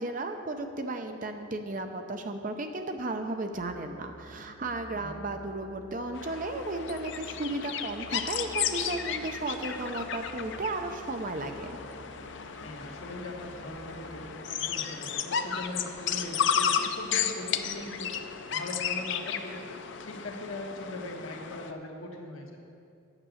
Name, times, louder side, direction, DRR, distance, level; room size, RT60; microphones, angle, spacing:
voice 1, 0.0-11.8, right 2 dB, 40° right, 6 dB, 0.6 m, -34 dB
Musical instrument, 3.5-14.3, equal, 5° left, 0.6 m, -52 dB
sound 1, 4.8-15.3, right 1 dB, 60° right, 0.9 m, -56 dB
sound 2, 6.1-21.7, left 8 dB, 55° left, 0.5 m, -33 dB
voice 2, 12.6-18.2 18.5-19.7 20.0-22.6, left 1 dB, 75° left, 1 dB, 1.3 m, -40 dB
8.9 x 6.0 x 8.2 m, 2.6 s
head